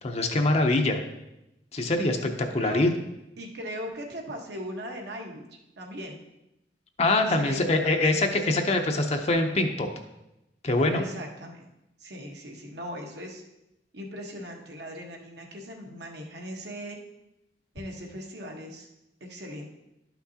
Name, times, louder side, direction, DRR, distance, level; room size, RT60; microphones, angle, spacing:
voice 1, 0.0-1.0 1.7-2.9 7.0-9.9 10.6-11.0, left 2 dB, 40° left, 4 dB, 0.6 m, -24 dB
voice 2, 2.4-2.8 3.4-5.4 5.8-6.2 7.3-8.4 8.8-8.9 10.9-11.7 12.0-13.4 13.9-17.0 17.7-18.9 19.2-19.7, equal, 70° right, 1 dB, 1.3 m, -39 dB
11.5 x 5.9 x 2.8 m, 0.90 s
head